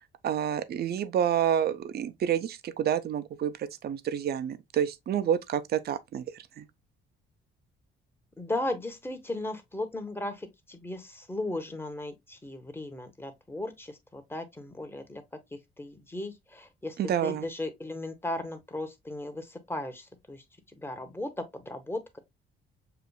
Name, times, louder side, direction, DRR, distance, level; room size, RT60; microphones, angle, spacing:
voice 1, 0.2-6.6 17.0-17.4, right 9 dB, 55° right, 0.5 m, -29 dB
voice 2, 8.4-15.2 15.5-20.4 20.8-22.2, left 1 dB, 10° left, 1.0 m, -36 dB
6.7 x 2.5 x 2.3 m
cardioid pair, 90°, 20 cm